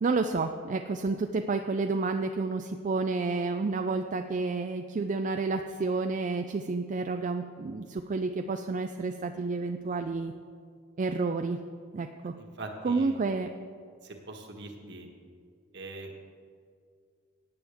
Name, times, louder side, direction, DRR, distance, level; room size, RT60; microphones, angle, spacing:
voice 1, 0.0-10.3 11.0-11.6 11.9-12.3 12.8-13.5, right 3 dB, 40° right, 6 dB, 0.4 m, -30 dB
voice 2, 12.4-13.2 14.0-15.1 15.7-16.2, right 2 dB, 60° right, 3 dB, 1.5 m, -42 dB
17.0 x 9.3 x 3.5 m, 2.2 s
head